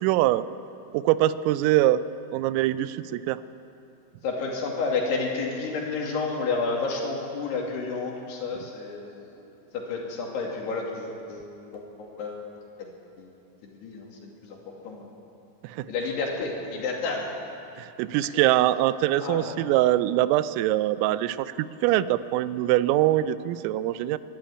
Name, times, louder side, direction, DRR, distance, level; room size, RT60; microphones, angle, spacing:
voice 1, 0.0-0.4 0.9-2.0 2.3-3.4 15.6-15.9 17.8-24.2, right 14 dB, 90° right, 15 dB, 3.3 m, -23 dB
voice 2, 4.2-9.3 9.7-12.4 12.8-12.9 13.2-13.3 13.6-14.6 14.8-15.1 15.9-17.3 19.2-19.5, left 4 dB, 60° left, -1 dB, 4.2 m, -31 dB
23.5 x 11.5 x 9.8 m, 2.7 s
omnidirectional pair, 5.8 m